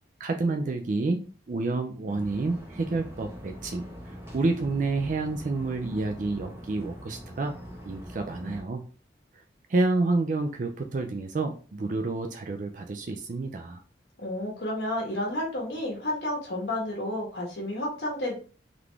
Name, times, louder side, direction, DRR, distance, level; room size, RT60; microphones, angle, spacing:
voice 1, 0.2-7.5 7.8-8.8 9.7-13.8, right 3 dB, 45° right, 5 dB, 0.4 m, -29 dB
sound 1, 2.1-8.6, equal, 15° right, 1.1 m, -43 dB
voice 2, 14.2-18.3, left 1 dB, 65° left, -3 dB, 1.4 m, -31 dB
3.9 x 3.2 x 3.4 m, 0.39 s
head